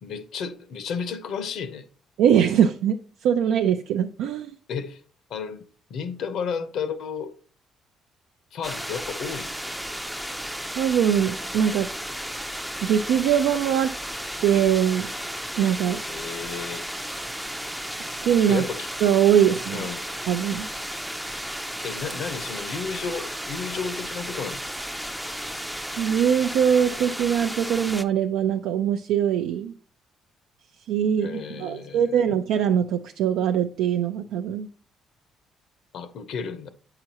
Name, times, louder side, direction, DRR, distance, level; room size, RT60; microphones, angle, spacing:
voice 1, 0.0-1.9 4.7-5.0 5.3-5.6 5.9-7.3 8.5-9.5 16.1-16.8 18.5-18.9 19.7-20.0 21.8-24.6 31.2-32.3 35.9-36.7, left 6 dB, 70° left, 0.8 m, -32 dB
voice 2, 2.2-3.0 3.2-4.5 10.8-11.9 12.8-13.9 14.4-15.1 15.6-16.0 18.0-18.6 19.0-19.9 20.3-20.7 26.0-29.7 30.9-34.7, right 9 dB, 85° right, 0.4 m, -22 dB
sound 1, 8.6-28.0, equal, ahead, 0.4 m, -34 dB
8.6 x 5.8 x 2.9 m
cardioid pair, 105°, 0 cm